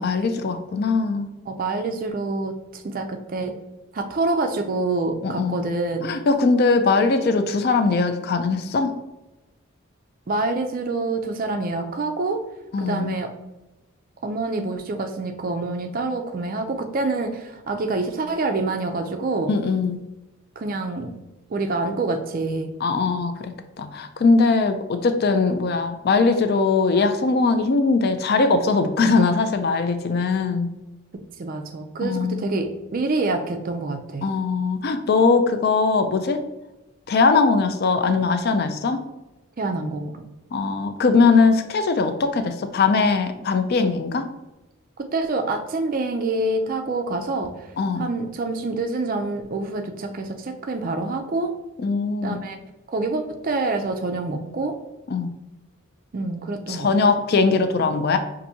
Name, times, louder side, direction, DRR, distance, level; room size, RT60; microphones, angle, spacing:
voice 1, 0.0-1.3 5.2-5.6 6.0-8.9 12.7-13.1 19.5-20.0 22.8-23.5 23.8-30.7 32.0-32.7 34.2-36.4 37.1-39.0 40.5-44.3 47.8-48.1 51.8-52.4 55.1-55.3 56.7-58.2, left 4 dB, 45° left, 8 dB, 0.3 m, -20 dB
voice 2, 1.5-3.5 3.9-6.1 10.3-12.4 12.8-13.3 14.2-19.5 20.6-21.1 21.5-22.7 31.4-32.7 32.9-34.3 39.6-40.3 45.0-47.7 48.0-51.5 52.2-52.6 52.9-54.7 56.1-56.9, right 3 dB, 40° right, 5 dB, 0.4 m, -26 dB
5.6 x 2.6 x 2.7 m, 1.0 s
head